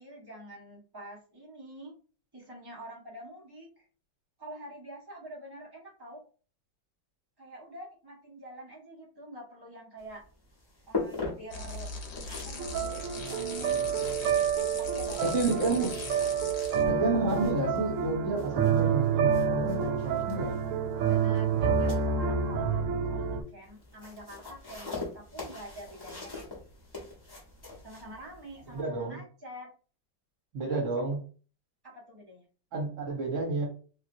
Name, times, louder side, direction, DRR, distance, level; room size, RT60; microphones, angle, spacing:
voice 1, 0.0-1.9 2.3-3.9 4.4-6.2 7.4-10.2 10.9-11.9 12.3-13.9 14.8-15.3 21.1-26.5 27.8-29.7 30.7-30.8 31.8-32.4, right 1 dB, 25° right, -3 dB, 0.5 m, -46 dB
sound 1, 10.0-28.8, left 3 dB, 20° left, 0.7 m, -43 dB
sound 2, 11.5-16.9, left 3 dB, 65° left, 1.3 m, -40 dB
sound 3, 12.6-23.4, right 7 dB, 85° right, 0.7 m, -28 dB
voice 2, 15.2-16.0 16.8-20.6 28.7-29.2 30.5-31.2 32.7-33.7, right 3 dB, 45° right, 0 dB, 1.3 m, -30 dB
3.0 x 2.8 x 2.6 m, 0.39 s
omnidirectional pair, 2.0 m